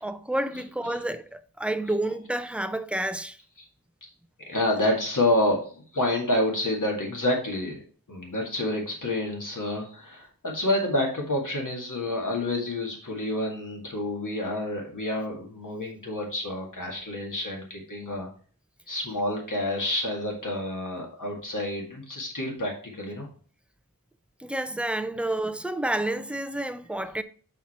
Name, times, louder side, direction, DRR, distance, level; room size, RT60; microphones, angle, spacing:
voice 1, 0.0-3.4 24.4-27.2, right 1 dB, 5° right, 0.5 m, -29 dB
voice 2, 4.5-7.8 8.1-18.3 18.9-23.3, left 1 dB, 60° left, 2.1 m, -28 dB
5.6 x 4.9 x 4.3 m
wide cardioid pair, 50°, 35 cm